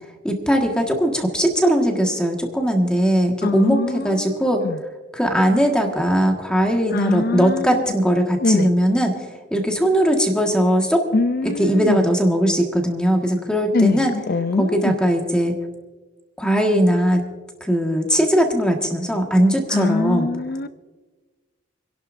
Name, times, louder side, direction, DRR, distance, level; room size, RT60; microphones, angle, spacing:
voice 1, 0.2-4.6 5.1-9.2 9.5-11.0 11.6-14.1 14.6-15.5 16.4-17.2 17.6-20.3, equal, 5° left, 1.7 m, -19 dB
voice 2, 3.4-4.8 6.9-7.8 8.4-8.7 11.1-12.1 13.7-15.0 19.7-20.7, left 3 dB, 50° left, 0.5 m, -23 dB
29.0 x 11.5 x 2.6 m
head